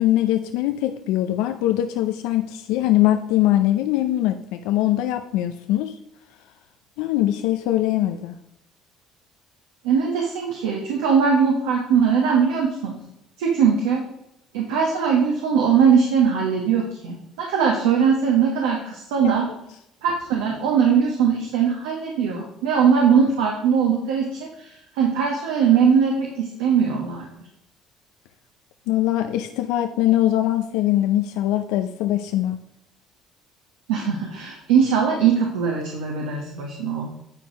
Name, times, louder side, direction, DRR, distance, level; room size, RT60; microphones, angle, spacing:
voice 1, 0.0-5.9 7.0-8.4 19.2-19.3 28.9-32.6, left 13 dB, 80° left, 7 dB, 0.5 m, -22 dB
voice 2, 9.8-13.0 13.4-14.0 14.5-19.4 20.0-27.3 33.9-37.0, right 6 dB, 85° right, -1 dB, 1.4 m, -20 dB
8.8 x 4.6 x 5.1 m, 0.82 s
supercardioid pair, 70°, 0 cm